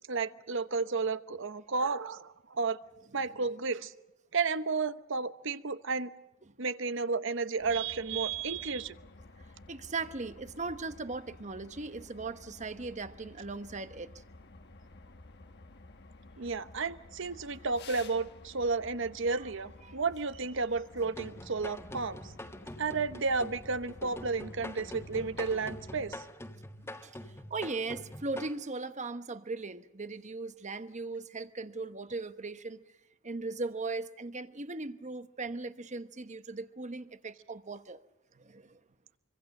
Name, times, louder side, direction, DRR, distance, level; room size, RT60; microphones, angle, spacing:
voice 1, 0.1-2.8 3.1-3.9 4.3-6.1 6.6-9.0 16.4-22.3 22.8-26.3, right 4 dB, 65° right, 1.0 m, -32 dB
sound 1, 7.6-26.2, left 2 dB, 55° left, 1.3 m, -53 dB
voice 2, 9.7-14.1 19.9-20.0 27.0-27.1 27.5-32.8 33.2-38.0 38.3-38.8, right 3 dB, 35° right, 1.1 m, -38 dB
sound 2, 21.0-28.5, left 1 dB, 15° left, 1.6 m, -45 dB
25.0 x 24.5 x 6.6 m
head